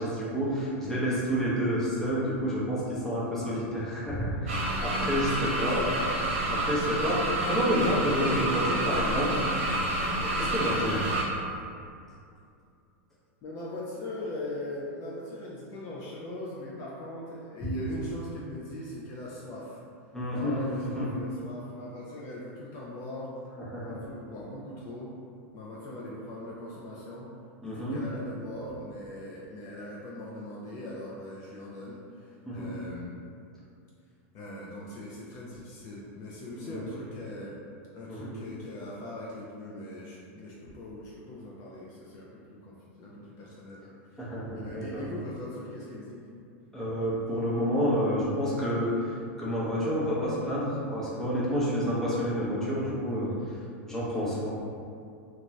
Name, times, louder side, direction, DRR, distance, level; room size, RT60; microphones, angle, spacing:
voice 1, 0.0-5.8 6.5-9.4 10.1-11.1 20.1-21.2 23.7-24.0 27.6-28.0 32.5-32.7 36.6-36.8 38.1-38.3 44.2-45.1 46.7-53.3 53.9-54.5, equal, 5° left, -8 dB, 0.7 m, -29 dB
sound 1, 4.5-11.2, right 1 dB, 80° right, 0.8 m, -29 dB
voice 2, 5.5-6.2 13.4-19.8 20.3-23.3 23.8-25.1 25.5-27.3 27.6-33.2 34.3-37.6 37.9-43.8 44.1-46.3, left 1 dB, 40° left, -5 dB, 0.4 m, -40 dB
2.5 x 2.2 x 3.0 m, 2.5 s
supercardioid pair, 140°, 7 cm